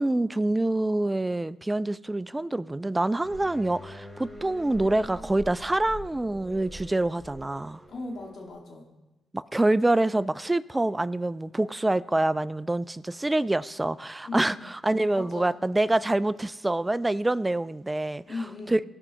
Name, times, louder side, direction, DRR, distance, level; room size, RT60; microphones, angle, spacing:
voice 1, 0.0-7.8 9.3-14.5 14.8-18.2 18.7-18.8, right 2 dB, 15° right, 17 dB, 0.3 m, -26 dB
sound 1, 3.2-8.5, equal, 5° left, 2.7 m, -44 dB
voice 2, 7.9-8.9 14.2-14.6 15.1-15.5 18.3-18.8, left 3 dB, 60° left, 0 dB, 1.8 m, -37 dB
15.5 x 5.4 x 2.9 m, 1.0 s
supercardioid pair, 55°, 0 cm